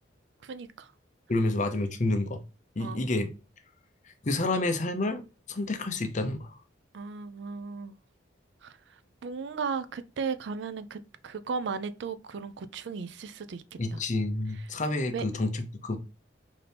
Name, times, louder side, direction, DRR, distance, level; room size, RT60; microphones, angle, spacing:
voice 1, 0.4-0.9 2.8-3.1 6.9-8.0 8.6-13.6 13.9-14.0 14.5-14.7 15.1-15.2, right 5 dB, 65° right, 0.4 m, -36 dB
voice 2, 1.3-2.4 2.8-3.3 4.2-5.2 5.5-6.5 13.8-16.0, left 2 dB, 40° left, 0.6 m, -29 dB
4.1 x 2.7 x 3.3 m
head